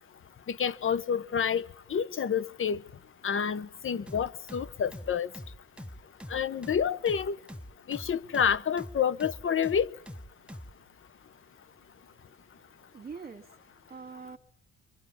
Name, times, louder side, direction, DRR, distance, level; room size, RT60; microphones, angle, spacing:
voice 1, 0.5-2.8 3.2-5.3 6.3-7.4 7.9-9.9, left 7 dB, 45° left, 1.0 m, -28 dB
sound 1, 4.1-10.8, equal, 5° right, 1.1 m, -44 dB
voice 2, 11.7-14.4, right 5 dB, 30° right, 2.0 m, -47 dB
25.0 x 25.0 x 7.2 m
cardioid pair, 90°, 30 cm